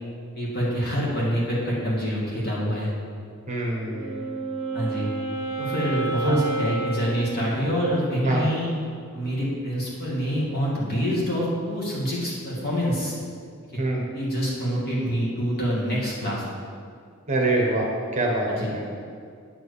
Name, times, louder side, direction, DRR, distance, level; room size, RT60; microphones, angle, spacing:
voice 1, 0.3-2.9 4.7-5.1 5.6-8.7 9.1-13.2 14.1-16.4 17.5-17.6 18.5-18.7, equal, 45° left, -6 dB, 2.4 m, -26 dB
voice 2, 3.5-4.3 6.2-6.5 8.2-8.5 13.8-14.0 17.3-17.9 18.1-19.0, right 2 dB, 35° right, -2 dB, 1.1 m, -25 dB
Wind instrument woodwind instrument, 3.7-8.1, right 3 dB, 80° left, 1.9 m, -31 dB
8.7 x 4.6 x 7.0 m, 2.2 s
head